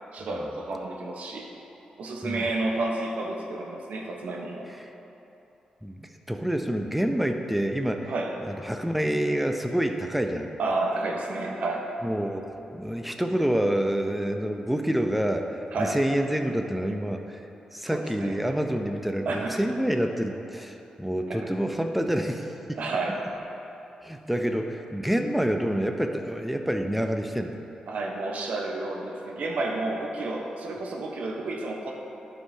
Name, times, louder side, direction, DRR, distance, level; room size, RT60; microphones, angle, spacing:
voice 1, 0.1-1.5 2.0-4.7 8.1-8.4 10.6-11.9 15.7-16.0 17.9-18.4 19.3-19.6 21.3-21.5 22.8-23.2 27.9-31.9, right 2 dB, 75° right, 0 dB, 1.0 m, -30 dB
voice 2, 5.8-8.1 8.4-10.5 12.0-17.5 17.7-22.8 24.0-27.6, right 1 dB, 5° right, 5 dB, 0.7 m, -27 dB
11.5 x 5.6 x 2.8 m, 3.0 s
cardioid pair, 60°, 2 cm